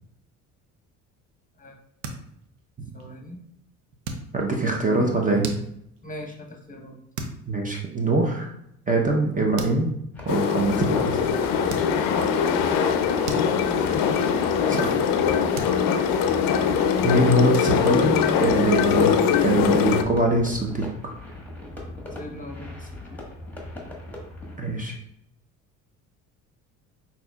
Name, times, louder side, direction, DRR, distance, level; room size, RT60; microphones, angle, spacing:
sound 1, 1.8-2.6 3.0-3.3 4.0-4.7 5.2-6.1 6.6-6.9 7.1-7.5 7.9-8.0 9.1-9.2 9.5-9.9 10.6-10.7 11.7-12.3 12.7-14.0 14.3-14.6 14.9-15.0 15.5-16.9, right 3 dB, 80° right, 0.7 m, -36 dB
voice 1, 2.9-3.4 4.6-5.1 6.0-7.0 13.4-13.6 22.2-23.2, left 1 dB, 20° left, 2 dB, 1.0 m, -40 dB
voice 2, 4.3-5.5 7.5-8.5 8.9-9.9 10.2-11.2 14.7-15.0 17.0-19.1 19.4-20.9 24.6-24.9, right 2 dB, 20° right, 0 dB, 0.7 m, -23 dB
sound 2, 10.1-24.6, left 1 dB, 5° left, 1.4 m, -39 dB
sound 3, 10.3-20.0, left 7 dB, 55° left, 0.5 m, -22 dB
5.9 x 2.8 x 2.3 m, 0.75 s
hypercardioid pair, 70°, 40 cm